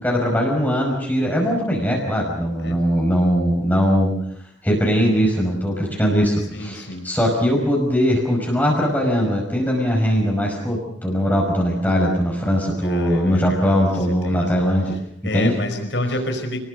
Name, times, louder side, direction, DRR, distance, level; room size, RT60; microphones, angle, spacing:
voice 1, 0.0-4.1 4.6-14.9 15.3-15.5, equal, 10° left, -1 dB, 5.4 m, -20 dB
voice 2, 6.5-7.1 12.7-15.0 15.2-16.6, left 1 dB, 75° left, 6 dB, 5.1 m, -29 dB
29.5 x 20.0 x 6.4 m, 0.73 s
head